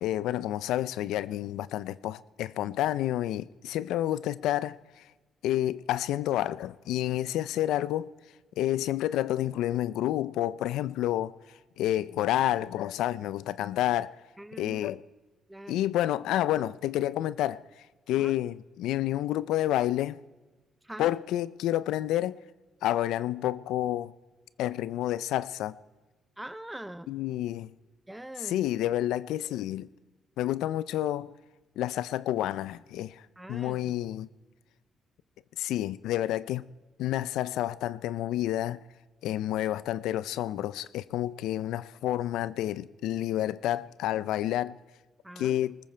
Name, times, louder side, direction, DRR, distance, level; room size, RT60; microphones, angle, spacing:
voice 1, 0.0-4.7 5.4-8.1 8.6-11.3 11.8-14.1 14.6-15.0 15.7-17.6 18.1-20.2 21.0-22.4 22.8-24.1 24.6-25.8 27.1-27.7 28.4-29.9 30.4-31.3 31.8-33.2 33.5-34.3 35.6-36.6 37.0-38.8 39.2-44.8 45.4-45.8, left 13 dB, 90° left, 0.4 m, -29 dB
voice 2, 14.4-14.8 15.5-15.8 18.2-18.3 20.8-21.1 26.4-27.1 28.1-28.6 33.4-34.0 45.2-45.6, right 1 dB, 10° right, 0.6 m, -43 dB
20.0 x 14.0 x 4.5 m
cardioid pair, 90°, 0 cm